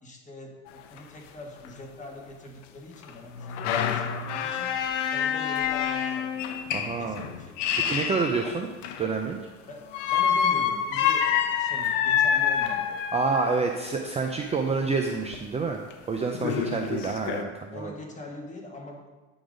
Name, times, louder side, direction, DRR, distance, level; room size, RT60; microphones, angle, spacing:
voice 1, 0.0-4.7 5.1-6.4 7.0-7.9 8.4-8.6 9.7-13.0 16.5-16.9 17.7-19.1, left 1 dB, 20° left, 0 dB, 1.5 m, -43 dB
sound 1, 0.7-0.8 1.0-1.1 1.7-1.8 3.0-9.2 9.9-13.6 15.3-15.4 15.9-16.0 16.3-17.4, left 8 dB, 90° left, 0.7 m, -27 dB
voice 2, 6.7-7.2 7.9-8.7 9.0-9.4 13.1-17.9, right 4 dB, 20° right, 3 dB, 0.5 m, -28 dB
8.9 x 4.0 x 5.0 m, 1.2 s
supercardioid pair, 105°, 36 cm